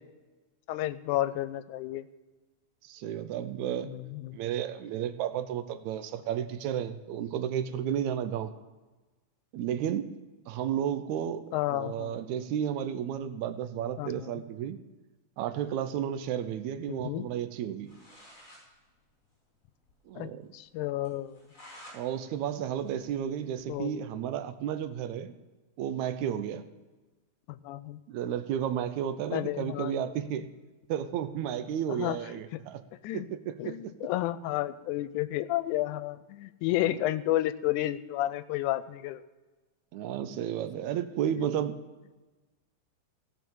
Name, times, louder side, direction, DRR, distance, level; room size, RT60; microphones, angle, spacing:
voice 1, 0.7-2.1 3.8-4.4 11.5-12.2 14.0-14.4 16.9-17.3 20.2-21.4 23.7-24.1 27.5-28.0 29.3-30.2 32.0-32.2 32.5-32.6 33.0-33.3 33.6-39.2, left 14 dB, 90° left, 15 dB, 2.0 m, -31 dB
voice 2, 2.8-3.9 4.3-8.5 9.5-10.1 10.5-14.8 15.4-17.9 20.1-20.5 21.9-25.3 25.8-26.7 28.1-30.5 30.9-32.8 33.1-33.9 39.9-41.8, right 9 dB, 80° right, 11 dB, 2.0 m, -32 dB
sound 1, 17.6-17.7 17.8-18.6 19.0-19.1 19.3-19.4 19.8-19.9 20.3-20.4 21.0-22.0 22.4-23.7, equal, 35° left, 5.2 m, -52 dB
16.5 x 5.9 x 7.1 m, 1.2 s
omnidirectional pair, 3.4 m